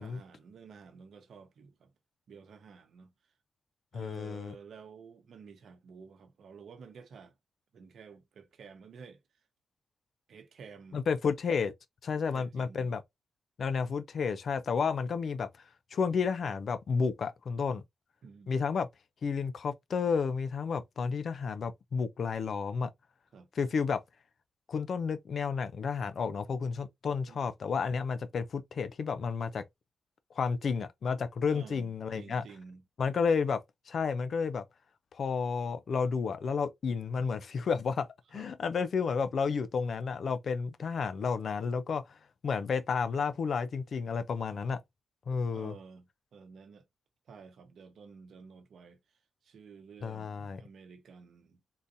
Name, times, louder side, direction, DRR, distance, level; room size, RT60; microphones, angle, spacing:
voice 1, 0.0-1.9 2.3-3.1 3.9-7.4 7.7-9.2 10.3-11.0 12.2-12.9 18.2-18.5 23.3-23.5 27.3-27.4 31.5-32.8 38.3-38.5 45.5-46.8 47.3-51.6, right 5 dB, 80° right, 0.8 m, -51 dB
voice 2, 3.9-4.5 10.9-11.7 12.0-13.0 13.6-17.8 18.5-18.9 19.2-22.9 23.6-24.0 24.7-29.6 30.3-32.4 33.0-34.6 35.1-44.8 45.3-45.7 50.0-50.6, left 5 dB, 65° left, 0.4 m, -31 dB
3.8 x 2.6 x 2.6 m
cardioid pair, 70°, 0 cm